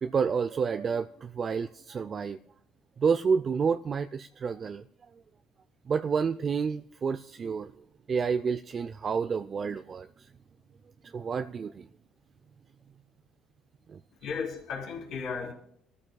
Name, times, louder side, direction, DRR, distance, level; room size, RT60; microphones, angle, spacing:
voice 1, 0.0-2.4 3.0-4.8 5.9-7.7 8.1-10.1 11.1-11.9 13.9-14.0, right 6 dB, 45° right, 9 dB, 0.4 m, -29 dB
voice 2, 14.2-15.5, left 5 dB, 70° left, -1 dB, 3.5 m, -35 dB
25.0 x 13.5 x 2.3 m, 0.69 s
supercardioid pair, 80°, 0 cm